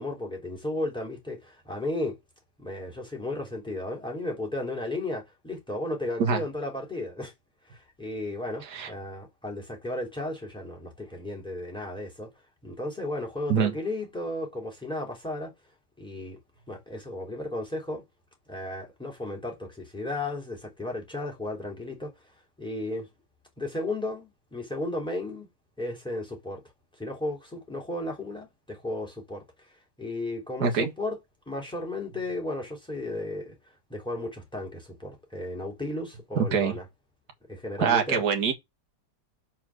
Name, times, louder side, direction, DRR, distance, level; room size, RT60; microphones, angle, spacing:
voice 1, 0.0-2.2 2.6-7.3 7.7-12.3 12.6-15.5 16.0-16.4 16.7-18.0 18.5-22.1 22.6-23.1 23.6-25.5 25.8-26.6 27.0-29.7 30.0-31.2 31.5-33.5 33.9-36.8 37.5-38.2, left 2 dB, ahead, 2.9 m, -34 dB
voice 2, 30.6-30.9 36.4-36.7 37.8-38.5, right 6 dB, 55° right, 1.9 m, -24 dB
5.9 x 4.3 x 6.3 m
omnidirectional pair, 2.2 m